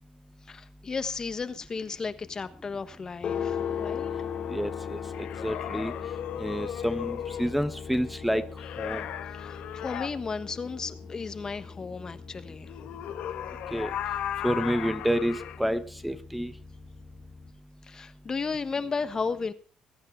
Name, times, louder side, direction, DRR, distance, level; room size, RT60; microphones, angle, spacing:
voice 1, 0.5-4.1 9.3-12.8 17.8-19.5, left 4 dB, 30° left, 11 dB, 1.3 m, -34 dB
sound 1, 3.2-17.5, left 7 dB, 65° left, 3.3 m, -39 dB
voice 2, 4.5-5.9 6.4-8.4 8.8-9.0 13.7-13.9 14.4-16.5, equal, 5° right, 10 dB, 1.2 m, -29 dB
sound 2, 5.1-7.5 8.6-10.1 12.7-15.6, left 10 dB, 80° left, 1.7 m, -36 dB
21.5 x 9.7 x 4.6 m, 0.39 s
cardioid pair, 110°, 2 cm